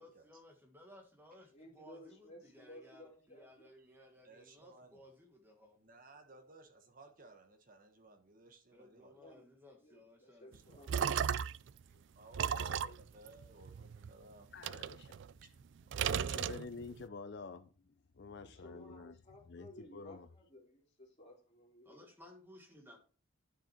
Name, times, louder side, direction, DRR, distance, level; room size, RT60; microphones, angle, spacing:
voice 1, 0.0-5.8 8.7-10.8 21.8-23.0, left 1 dB, 10° right, 1.6 m, -59 dB
voice 2, 1.5-3.5 9.2-9.4 9.8-11.5 12.4-13.0 18.3-22.1, left 1 dB, 35° left, 3.3 m, -57 dB
voice 3, 3.8-5.0 5.8-9.4 10.5-10.6 11.8-14.5 15.3-15.5, right 2 dB, 40° right, 1.3 m, -59 dB
sound 1, 10.5-11.7 12.3-14.1 14.6-15.6 15.9-17.0, right 8 dB, 60° right, 0.3 m, -35 dB
voice 4, 14.5-15.1 16.1-19.1 19.5-20.3, left 4 dB, 55° left, 0.5 m, -49 dB
10.5 x 6.4 x 4.5 m
head